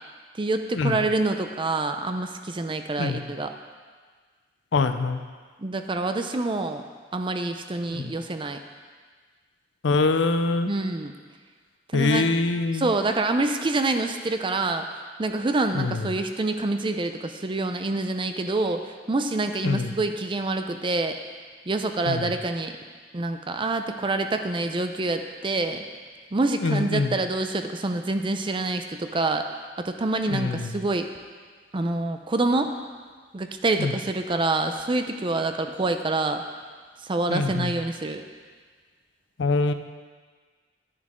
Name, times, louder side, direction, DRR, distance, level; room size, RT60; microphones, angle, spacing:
voice 1, 0.4-3.5 5.6-6.8 7.1-8.6 10.7-11.1 11.9-12.3 12.7-21.2 21.7-22.7 23.1-25.8 26.3-29.5 29.8-31.1 31.7-32.7 33.3-36.4 37.0-38.2, right 2 dB, 25° right, 7 dB, 0.5 m, -26 dB
voice 2, 4.7-5.2 7.9-8.1 9.8-10.7 11.9-12.9 15.7-16.1 19.6-20.0 22.0-22.3 26.6-27.2 30.3-30.8 33.8-33.9 37.3-37.7 39.4-39.7, left 3 dB, 75° left, 9 dB, 0.5 m, -24 dB
9.7 x 9.7 x 3.7 m, 1.5 s
head